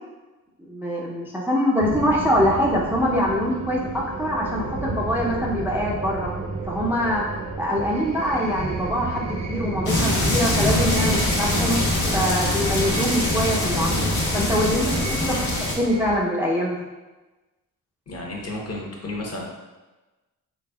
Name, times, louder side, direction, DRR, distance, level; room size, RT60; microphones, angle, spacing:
voice 1, 0.6-6.3 6.6-7.2 7.6-11.8 12.1-14.1 14.3-15.4 15.8-16.8, equal, 5° right, -4 dB, 0.5 m, -24 dB
sound 1, 1.8-16.2, right 3 dB, 45° right, 0.6 m, -33 dB
sound 2, 9.9-15.8, left 1 dB, 80° left, 1.1 m, -23 dB
voice 2, 18.1-19.4, left 1 dB, 40° left, -1 dB, 0.9 m, -32 dB
4.1 x 3.4 x 2.2 m, 1.2 s
cardioid pair, 70°, 37 cm